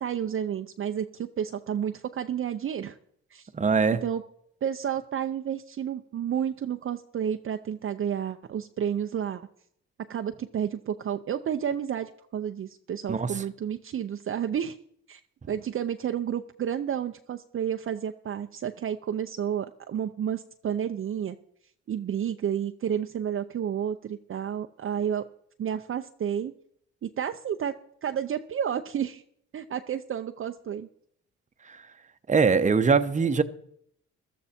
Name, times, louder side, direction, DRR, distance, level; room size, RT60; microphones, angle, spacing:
voice 1, 0.0-3.0 3.3-3.5 4.0-4.2 4.6-9.5 10.1-14.8 15.1-15.2 15.5-21.4 21.9-25.2 25.6-26.5 27.0-27.7 28.0-29.2 29.5-30.9, right 9 dB, 45° right, 0.6 m, -31 dB
voice 2, 3.5-4.0 13.1-13.3 31.7-31.8 32.3-33.4, right 5 dB, 25° right, 0.9 m, -22 dB
14.5 x 12.5 x 4.4 m
cardioid pair, 90°, 30 cm